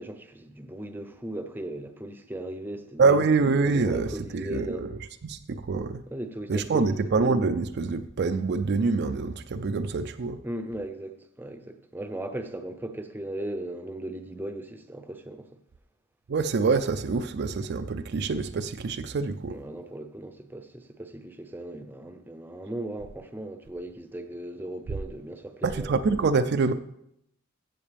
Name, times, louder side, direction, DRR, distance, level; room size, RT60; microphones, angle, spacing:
voice 1, 0.0-3.3 3.7-4.9 6.1-7.0 10.4-15.5 19.5-25.9, right 1 dB, 10° right, 0.6 m, -37 dB
voice 2, 3.0-6.0 6.5-10.4 16.3-19.6 25.6-26.7, right 4 dB, 55° right, 0.4 m, -25 dB
14.5 x 7.5 x 3.4 m
head